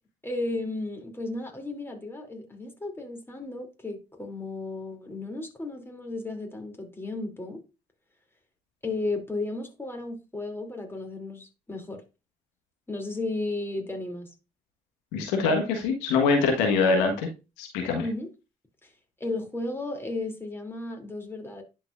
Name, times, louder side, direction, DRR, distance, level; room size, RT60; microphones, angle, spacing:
voice 1, 0.2-7.6 8.8-12.0 12.9-14.3 16.7-17.0 18.0-18.3 18.8-18.9 19.2-21.6, left 2 dB, 15° left, 2.9 m, -34 dB
voice 2, 15.1-17.1 17.6-18.0, left 4 dB, 85° left, 1.4 m, -23 dB
11.0 x 4.6 x 2.5 m
hypercardioid pair, 50°, 17 cm